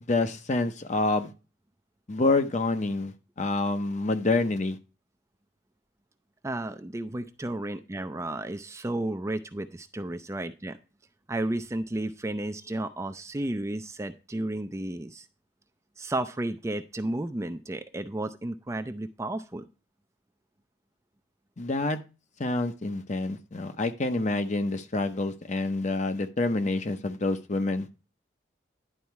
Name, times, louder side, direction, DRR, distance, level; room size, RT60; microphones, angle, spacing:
voice 1, 0.1-1.3 2.1-4.8 21.6-22.0 22.4-27.9, left 2 dB, 40° left, 9 dB, 0.8 m, -27 dB
voice 2, 6.4-10.8 11.3-15.3 16.0-19.7, right 1 dB, 15° right, 8 dB, 0.4 m, -33 dB
11.0 x 4.2 x 4.6 m, 0.32 s
head